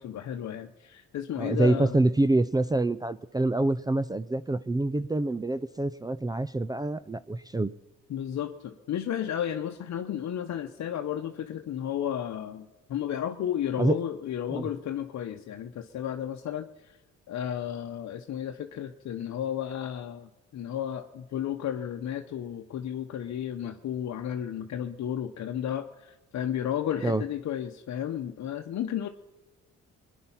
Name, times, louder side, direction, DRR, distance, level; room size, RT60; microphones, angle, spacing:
voice 1, 0.0-2.0 8.1-17.0 17.3-29.1, left 10 dB, 65° left, 5 dB, 0.9 m, -33 dB
voice 2, 1.4-7.7 13.8-14.0 14.5-14.6 27.0-27.2, right 2 dB, 15° right, 15 dB, 0.5 m, -26 dB
21.5 x 10.5 x 5.7 m, 1.1 s
cardioid pair, 90°, 30 cm